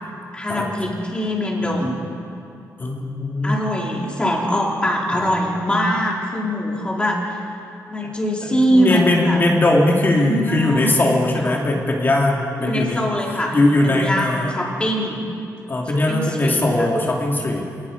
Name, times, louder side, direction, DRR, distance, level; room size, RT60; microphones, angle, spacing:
voice 1, 0.3-2.0 3.4-7.4 7.9-9.4 10.1-11.0 11.4-11.6 12.6-13.5 13.8-15.2 16.1-16.9, equal, 15° left, -2 dB, 4.1 m, -23 dB
voice 2, 2.8-3.6 5.1-5.3 8.4-13.0 13.5-14.6 15.7-17.7, left 2 dB, 35° left, -1 dB, 2.8 m, -19 dB
27.5 x 19.0 x 5.5 m, 2.6 s
wide cardioid pair, 135°, 6 cm